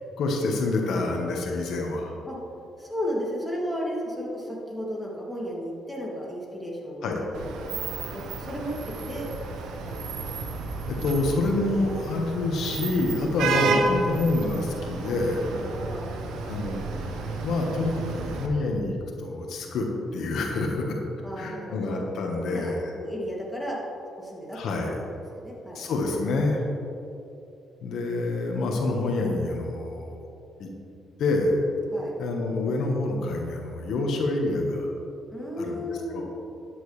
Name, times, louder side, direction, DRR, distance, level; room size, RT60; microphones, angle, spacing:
voice 1, 0.2-2.2 7.0-7.2 10.9-15.4 16.4-19.9 20.1-21.0 21.4-22.8 24.5-25.0 25.7-26.6 27.8-30.2 30.6-30.7 31.2-31.6 32.2-34.9 35.6-35.8 36.1-36.3, left 2 dB, 75° left, 0 dB, 1.4 m, -27 dB
voice 2, 2.8-9.3 9.9-10.4 15.0-15.1 15.5-16.1 21.2-21.9 22.4-23.8 24.2-25.8 31.9-32.2 35.3-36.3, equal, ahead, -5 dB, 2.6 m, -34 dB
Vehicle horn car horn honking / Traffic noise roadway noise, 7.3-18.5, right 4 dB, 85° right, 1.1 m, -31 dB
12.5 x 9.4 x 3.4 m, 2.7 s
cardioid pair, 90°, 0 cm